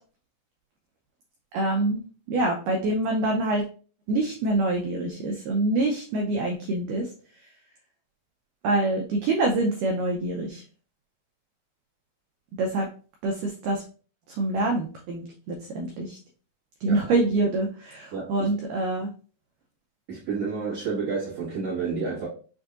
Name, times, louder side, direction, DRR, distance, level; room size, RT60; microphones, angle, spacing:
voice 1, 1.5-2.0 2.3-3.6 4.1-7.1 8.6-10.6 12.6-12.9 13.2-13.8 14.4-16.2 16.8-19.1, right 2 dB, 80° right, 1.9 m, -25 dB
voice 2, 18.1-18.5 20.1-22.3, right 5 dB, 50° right, 1.9 m, -30 dB
6.3 x 2.6 x 2.4 m
omnidirectional pair, 4.3 m